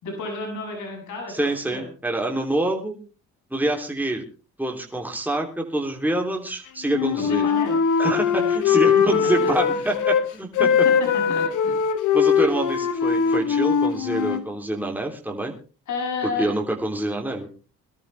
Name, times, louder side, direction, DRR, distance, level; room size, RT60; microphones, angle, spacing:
voice 1, 0.0-1.9 7.1-7.8 8.3-8.5 9.1-9.5 10.6-11.7 15.9-16.5, left 3 dB, 75° left, 1 dB, 7.6 m, -32 dB
voice 2, 1.3-3.0 3.5-4.2 4.6-7.5 8.0-10.7 12.1-15.5 16.2-17.5, right 1 dB, 5° right, 0 dB, 3.3 m, -26 dB
Wind instrument woodwind instrument, 6.9-10.2 10.5-14.4, left 7 dB, 90° left, 1.8 m, -21 dB
22.5 x 12.5 x 3.4 m, 0.34 s
cardioid pair, 90°, 30 cm